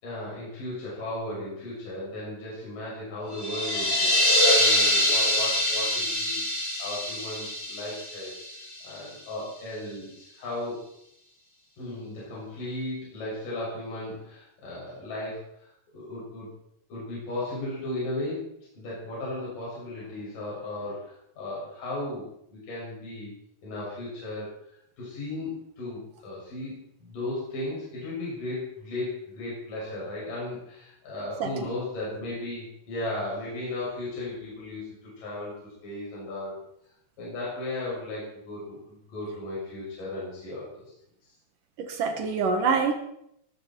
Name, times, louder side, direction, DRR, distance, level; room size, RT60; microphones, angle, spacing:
voice 1, 0.0-4.1 4.6-8.3 8.8-10.8 11.8-15.7 15.9-16.5 16.9-18.5 18.8-23.3 23.6-24.5 25.0-36.6 37.2-40.8, left 1 dB, 50° left, -6 dB, 8.2 m, -35 dB
sound 1, 3.3-9.0, left 1 dB, 20° left, 2.1 m, -24 dB
voice 2, 41.8-42.9, right 5 dB, 60° right, 6 dB, 2.6 m, -26 dB
20.0 x 12.5 x 4.6 m, 0.75 s
omnidirectional pair, 4.9 m